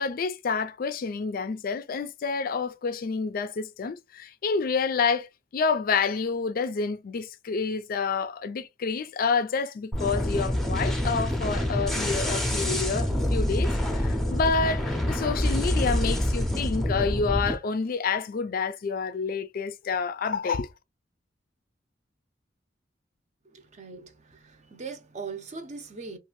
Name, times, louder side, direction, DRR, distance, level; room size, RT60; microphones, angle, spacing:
voice 1, 0.0-5.3 5.5-20.7, left 5 dB, 50° left, 0.4 m, -28 dB
sound 1, 9.9-17.5, left 1 dB, ahead, 0.6 m, -26 dB
voice 2, 23.5-26.2, right 4 dB, 40° right, 0.6 m, -40 dB
2.6 x 2.4 x 3.0 m
head